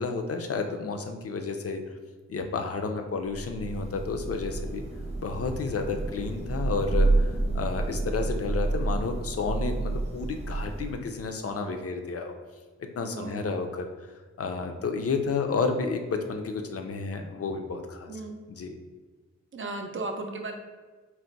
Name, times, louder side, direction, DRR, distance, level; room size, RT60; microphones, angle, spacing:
voice 1, 0.0-1.8 2.3-4.8 5.2-12.3 13.0-18.2 18.5-18.7, left 4 dB, 55° left, 5 dB, 0.5 m, -31 dB
Thunder / Rain, 3.3-11.3, right 2 dB, 20° right, 0.8 m, -29 dB
voice 2, 13.1-13.5 18.1-18.4 19.5-20.5, right 2 dB, 45° right, 3 dB, 0.4 m, -36 dB
4.5 x 2.1 x 3.8 m, 1.4 s
wide cardioid pair, 100°, 29 cm